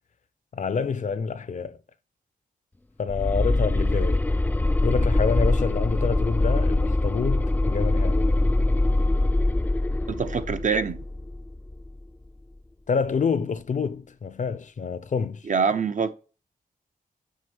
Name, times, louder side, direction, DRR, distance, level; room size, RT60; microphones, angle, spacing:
voice 1, 0.5-1.8 3.0-4.3 4.8-8.3 12.9-15.4, left 5 dB, 55° left, 0.6 m, -27 dB
sound 1, 3.1-12.0, left 2 dB, 10° left, 0.4 m, -23 dB
voice 2, 10.1-11.0 15.5-16.1, right 5 dB, 55° right, 0.8 m, -25 dB
6.4 x 5.2 x 7.0 m
wide cardioid pair, 120°, 16 cm